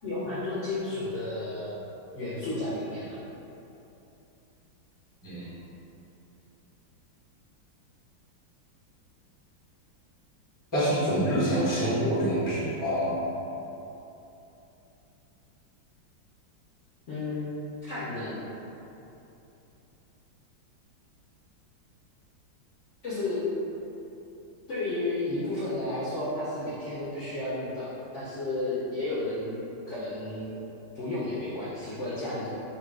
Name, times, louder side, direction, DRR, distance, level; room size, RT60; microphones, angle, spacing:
voice 1, 0.0-1.7 2.1-3.2 17.1-17.5 17.8-18.4 23.0-23.4 24.7-29.6 29.9-30.5 30.9-32.5, left 2 dB, 85° left, -10 dB, 0.6 m, -32 dB
voice 2, 10.7-13.2, equal, 20° left, -9 dB, 0.5 m, -26 dB
4.3 x 2.2 x 4.6 m, 3.0 s
omnidirectional pair, 2.2 m